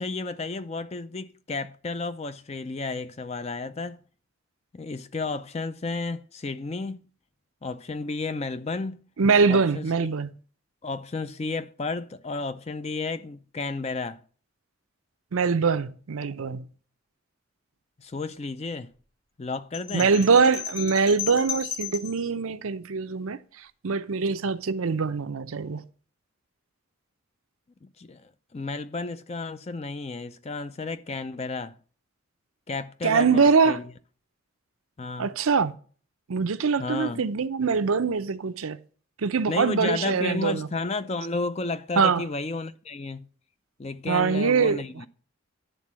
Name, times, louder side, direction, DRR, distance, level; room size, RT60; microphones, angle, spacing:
voice 1, 0.0-4.0 4.7-7.0 7.6-9.0 9.5-10.1 10.8-14.2 18.0-18.9 19.4-20.1 27.8-31.7 32.7-33.8 35.0-35.3 36.8-37.2 39.5-43.3 43.8-45.1, left 3 dB, 30° left, 0.4 m, -32 dB
voice 2, 9.2-10.3 15.3-16.6 19.9-23.4 23.8-25.8 33.0-33.8 35.2-35.7 36.3-38.8 39.2-40.7 42.0-42.2 44.1-44.8, right 5 dB, 80° right, 0.6 m, -23 dB
sound 1, 19.7-22.2, left 8 dB, 45° left, 3.4 m, -35 dB
10.5 x 3.8 x 7.4 m
head